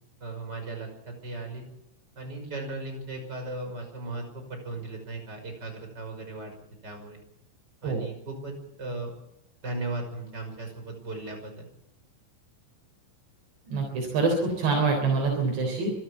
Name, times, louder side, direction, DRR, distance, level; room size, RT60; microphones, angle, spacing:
voice 1, 0.2-1.6 2.2-6.6 6.8-7.2 7.8-9.1 9.6-11.6, right 2 dB, 25° right, 4 dB, 6.0 m, -37 dB
voice 2, 13.7-15.9, right 4 dB, 70° right, 0 dB, 5.9 m, -25 dB
25.5 x 13.5 x 8.3 m, 0.81 s
omnidirectional pair, 5.2 m